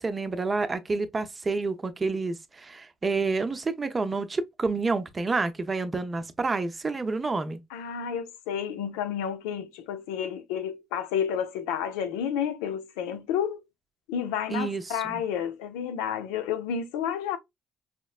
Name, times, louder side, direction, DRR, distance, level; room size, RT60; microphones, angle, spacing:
voice 1, 0.0-7.6 14.5-15.2, right 3 dB, 30° right, 0.6 m, -29 dB
voice 2, 7.7-13.6 14.1-17.4, left 8 dB, 90° left, 0.5 m, -30 dB
5.0 x 2.1 x 2.3 m
supercardioid pair, 70°, 0 cm